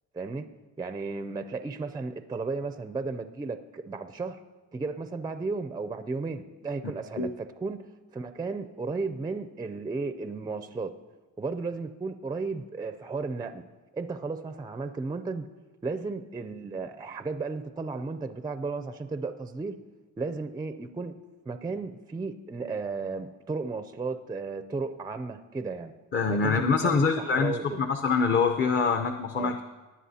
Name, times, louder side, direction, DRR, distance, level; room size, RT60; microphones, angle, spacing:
voice 1, 0.1-0.5 0.8-4.4 4.7-7.9 8.1-10.9 11.4-13.6 13.9-15.4 15.8-19.8 20.2-25.9 26.3-27.9 29.3-29.5, right 4 dB, 15° right, 9 dB, 0.4 m, -34 dB
voice 2, 26.1-29.6, left 5 dB, 40° left, 5 dB, 0.7 m, -25 dB
19.0 x 9.7 x 2.8 m, 1.2 s
cardioid pair, 125°, 31 cm